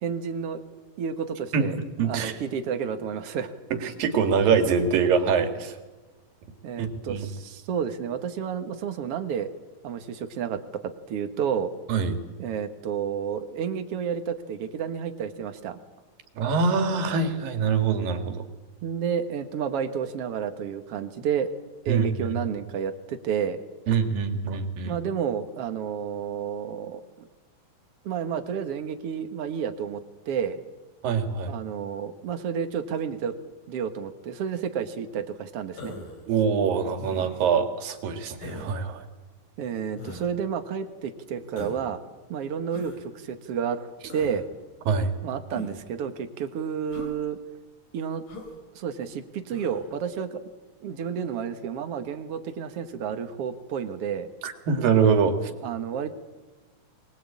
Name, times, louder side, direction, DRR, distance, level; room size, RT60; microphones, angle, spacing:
voice 1, 0.0-0.6 1.0-1.8 2.0-3.5 6.6-9.5 9.8-11.7 12.4-15.8 18.8-21.5 21.9-23.6 24.9-27.0 28.0-30.0 30.3-30.6 31.5-33.3 33.7-36.0 39.6-42.0 42.3-43.9 44.1-44.4 45.2-47.4 47.9-48.2 48.7-50.4 50.8-54.3 55.6-56.1, right 7 dB, 55° right, 7 dB, 2.1 m, -30 dB
voice 2, 2.0-2.3 3.7-5.8 6.8-7.3 11.9-12.2 16.4-18.4 21.9-22.3 23.9-25.0 31.0-31.6 36.3-39.0 44.9-45.1 54.4-55.5, right 6 dB, 90° right, 7 dB, 3.6 m, -24 dB
Human voice, 35.8-36.3 37.0-37.5 38.4-38.7 40.0-40.3 41.6-41.9 42.7-43.0 44.1-44.4 45.5-45.9 46.9-47.2 48.3-48.6 49.5-49.8, left 2 dB, 70° left, 5.2 m, -40 dB
23.5 x 20.5 x 8.7 m, 1.2 s
omnidirectional pair, 3.9 m